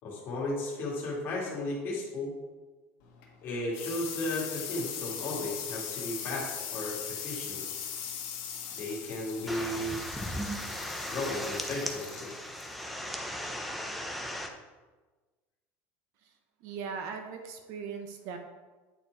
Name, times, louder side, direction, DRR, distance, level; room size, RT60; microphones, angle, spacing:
voice 1, 0.0-2.3 3.4-7.6 8.8-10.0 11.0-12.3, left 1 dB, 35° left, -4 dB, 2.3 m, -35 dB
sound 1, 3.0-14.3, left 8 dB, 65° left, 1.6 m, -40 dB
sound 2, 9.5-14.5, equal, ahead, 0.6 m, -37 dB
voice 2, 16.6-18.4, right 6 dB, 55° right, 5 dB, 0.8 m, -39 dB
9.1 x 4.4 x 4.7 m, 1.3 s
cardioid pair, 170°, 6 cm